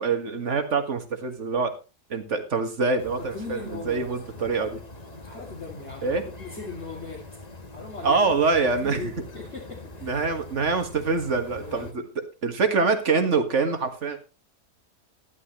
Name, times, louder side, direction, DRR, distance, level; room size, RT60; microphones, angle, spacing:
voice 1, 0.0-1.8 2.1-4.8 6.0-6.2 8.0-9.1 10.0-12.0 12.4-14.2, right 4 dB, 50° right, 6 dB, 1.9 m, -25 dB
sound 1, 3.0-11.9, left 3 dB, 25° left, 1.3 m, -43 dB
voice 2, 3.2-4.0 5.1-7.2 7.7-8.4 8.8-10.2 11.6-12.0, left 3 dB, 45° left, -4 dB, 3.0 m, -39 dB
13.0 x 11.0 x 3.1 m, 0.30 s
omnidirectional pair, 1.7 m